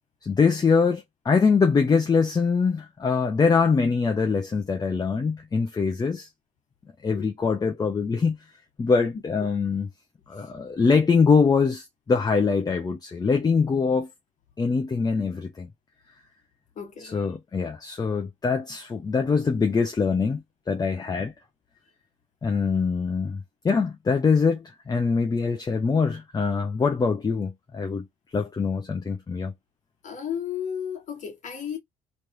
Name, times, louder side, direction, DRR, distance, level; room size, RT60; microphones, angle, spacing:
voice 1, 0.2-6.3 7.0-8.4 8.8-9.9 10.3-14.1 14.6-15.7 17.0-21.3 22.4-28.1 28.3-29.5, left 5 dB, 25° left, 0.7 m, -23 dB
voice 2, 16.8-17.2 30.0-31.8, left 8 dB, 50° left, 1.6 m, -33 dB
3.2 x 3.0 x 2.6 m
cardioid pair, 110°, 17 cm